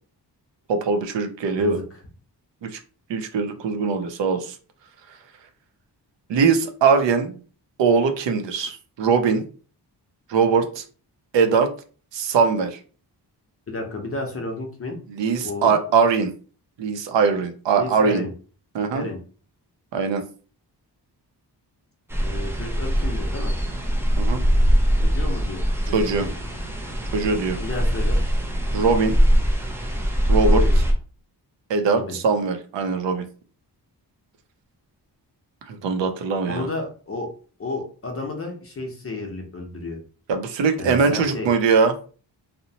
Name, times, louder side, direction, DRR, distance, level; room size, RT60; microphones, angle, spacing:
voice 1, 0.7-1.8 2.6-2.8 3.1-4.5 6.3-7.3 7.8-9.4 10.3-10.8 11.3-11.7 12.1-12.8 15.1-16.3 16.8-18.2 18.7-19.0 19.9-20.2 24.2-24.4 25.9-26.3 27.1-27.6 28.7-29.1 30.3-30.6 31.7-33.2 35.7-36.7 40.3-41.9, right 5 dB, 80° right, 7 dB, 0.6 m, -21 dB
voice 2, 1.5-2.0 13.7-15.0 15.4-15.7 17.7-18.3 18.9-19.2 22.2-23.5 25.0-26.3 27.6-28.2 30.5-30.8 31.9-32.2 36.5-37.3 37.6-40.0 40.8-41.5, left 2 dB, 35° left, 2 dB, 0.6 m, -32 dB
sound 1, 22.1-30.9, equal, 5° right, 0.3 m, -22 dB
2.7 x 2.0 x 2.7 m, 0.40 s
wide cardioid pair, 145°, 43 cm